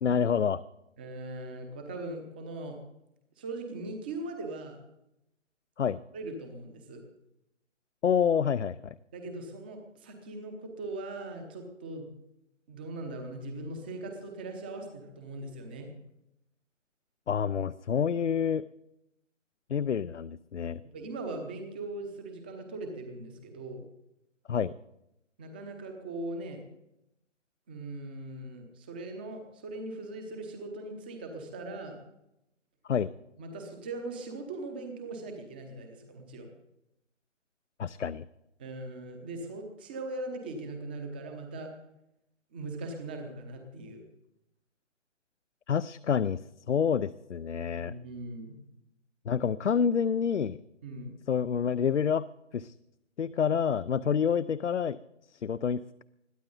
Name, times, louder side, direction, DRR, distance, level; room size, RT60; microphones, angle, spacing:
voice 1, 0.0-0.6 5.8-6.0 8.0-8.9 17.3-18.6 19.7-20.8 24.5-24.7 32.9-33.1 37.8-38.2 45.7-46.4 46.7-47.9 49.3-50.6 51.3-52.2 52.5-52.7 53.2-55.0 55.4-56.0, left 7 dB, 70° left, 15 dB, 0.6 m, -28 dB
voice 2, 1.0-2.8 3.4-4.8 6.1-7.0 9.1-12.1 12.7-15.9 20.9-23.8 25.4-26.6 27.7-32.0 33.4-36.5 38.6-41.7 42.5-44.0 47.7-48.5 50.8-51.1 54.1-54.2, right 2 dB, 10° right, 5 dB, 0.8 m, -40 dB
21.5 x 14.5 x 4.0 m, 0.85 s
figure-of-eight pair, 160°, 37 cm